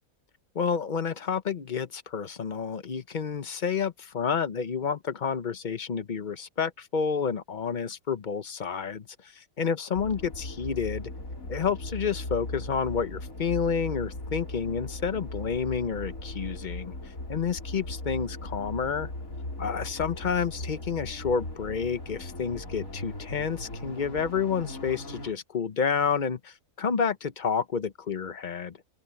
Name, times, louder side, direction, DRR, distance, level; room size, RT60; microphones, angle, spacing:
voice 1, 0.5-11.1 11.5-16.9 17.3-19.1 19.6-28.8, left 6 dB, 40° left, 0.8 m, -30 dB
sound 1, 10.0-25.3, left 1 dB, 65° left, 5.1 m, -38 dB
open air
omnidirectional pair, 1.6 m